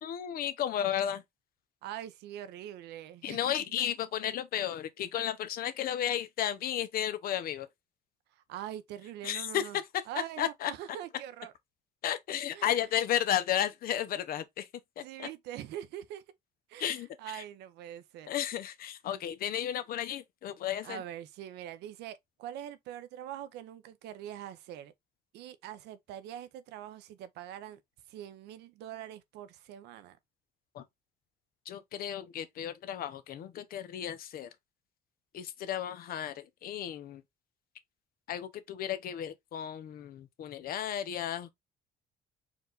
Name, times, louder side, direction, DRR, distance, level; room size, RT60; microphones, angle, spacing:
voice 1, 0.0-1.2 3.2-7.7 9.2-9.7 10.4-10.7 12.0-14.7 15.0-15.3 16.8-17.4 18.3-21.0 30.7-30.8 31.7-34.5 35.3-37.2 38.3-41.5, left 10 dB, 60° left, 0.7 m, -33 dB
voice 2, 1.8-3.5 8.4-9.8 10.1-11.5 12.5-12.8 15.0-16.2 16.7-18.3 20.8-24.9 25.3-27.8 28.1-30.2, right 11 dB, 80° right, 0.7 m, -43 dB
4.5 x 2.5 x 3.8 m
cardioid pair, 110°, 17 cm